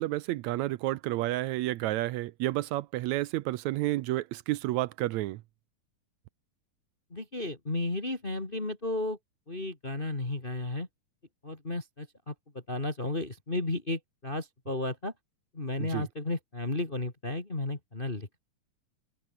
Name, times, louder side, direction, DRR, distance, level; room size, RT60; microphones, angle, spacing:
voice 1, 0.0-5.4 15.8-16.1, right 16 dB, 80° right, 1.9 m, -30 dB
voice 2, 7.1-9.2 9.5-10.9 11.4-12.3 12.7-15.1 15.5-18.4, left 2 dB, 20° left, 2.4 m, -33 dB
omnidirectional pair, 3.4 m